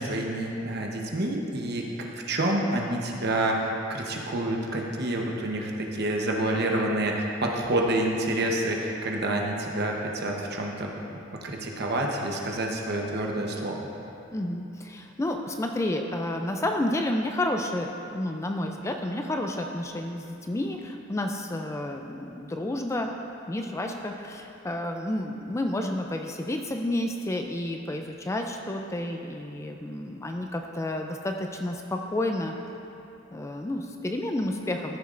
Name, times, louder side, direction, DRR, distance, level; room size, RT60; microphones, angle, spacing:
voice 1, 0.0-1.9 2.3-10.9 11.4-13.9, right 1 dB, 55° right, 0 dB, 0.9 m, -28 dB
voice 2, 14.3-23.1 23.5-32.5 33.3-35.0, left 1 dB, 15° left, 3 dB, 0.3 m, -30 dB
13.5 x 6.9 x 2.5 m, 2.8 s
head